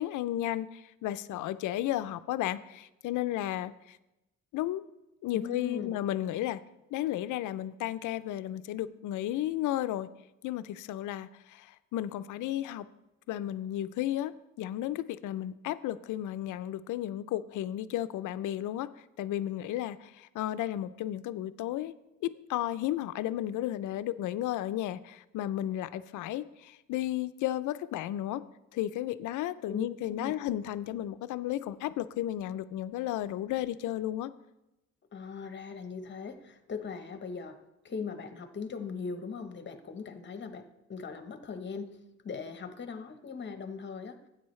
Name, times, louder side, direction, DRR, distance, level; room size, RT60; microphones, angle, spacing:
voice 1, 0.0-4.0 4.5-4.8 5.2-6.6 6.9-10.1 10.4-12.9 13.3-14.3 14.6-18.9 19.2-21.9 22.2-28.4 28.7-34.3, left 13 dB, 80° left, 14 dB, 0.5 m, -33 dB
voice 2, 5.3-5.9 29.7-30.3 35.1-37.6 37.8-42.0 42.2-44.3, left 5 dB, 40° left, 9 dB, 1.0 m, -39 dB
13.0 x 8.9 x 3.2 m, 0.93 s
cardioid pair, 90°, 30 cm